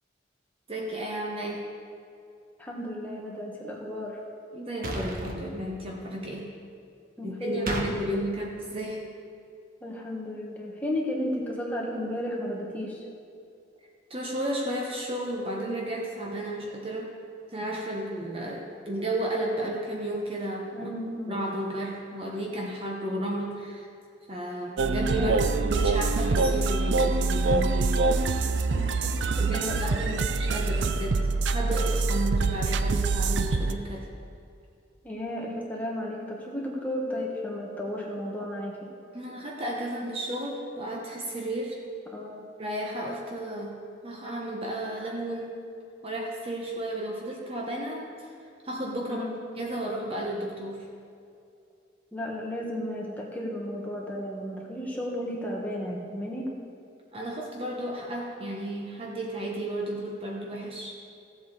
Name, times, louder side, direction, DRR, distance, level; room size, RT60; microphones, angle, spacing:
voice 1, 0.7-1.7 4.5-6.5 7.2-9.0 14.1-17.1 17.5-20.9 21.3-23.9 24.3-28.0 29.4-34.1 39.1-41.8 42.6-43.8 44.0-45.6 46.0-48.1 48.6-49.3 49.6-50.9 57.1-60.9, right 1 dB, 30° right, -1 dB, 1.0 m, -33 dB
voice 2, 2.6-4.2 7.2-8.1 9.8-13.0 20.7-21.4 25.2-25.4 28.7-30.3 35.0-38.9 42.1-42.5 49.0-49.4 52.1-56.5, left 1 dB, 10° left, -3 dB, 1.5 m, -34 dB
sound 1, 4.8-5.4 7.7-7.9, right 1 dB, 45° right, 1.3 m, -32 dB
sound 2, 24.8-33.7, right 3 dB, 65° right, 0.5 m, -25 dB
15.5 x 7.8 x 4.2 m, 2.5 s
head